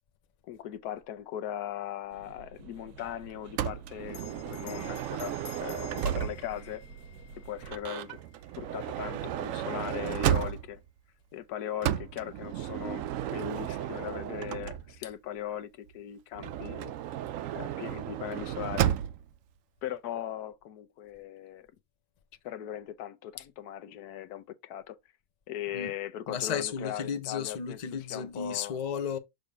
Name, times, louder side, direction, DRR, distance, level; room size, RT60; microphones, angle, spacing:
voice 1, 0.5-5.3 5.6-6.8 7.4-8.2 8.5-10.8 11.3-16.9 17.5-19.0 19.8-21.7 22.4-25.0 25.5-27.8 28.1-28.7, left 11 dB, 90° left, 1.3 m, -39 dB
sound 1, 2.1-7.8, right 5 dB, 85° right, 1.5 m, -50 dB
Motor vehicle (road) / Sliding door, 3.6-6.7 7.6-10.9 11.8-15.1 16.3-19.3, right 11 dB, 70° right, 0.8 m, -33 dB
Bell, 4.1-9.0, left 12 dB, 70° left, 1.0 m, -51 dB
voice 2, 26.3-29.2, left 7 dB, 40° left, 0.6 m, -34 dB
6.6 x 3.1 x 5.1 m
omnidirectional pair, 1.6 m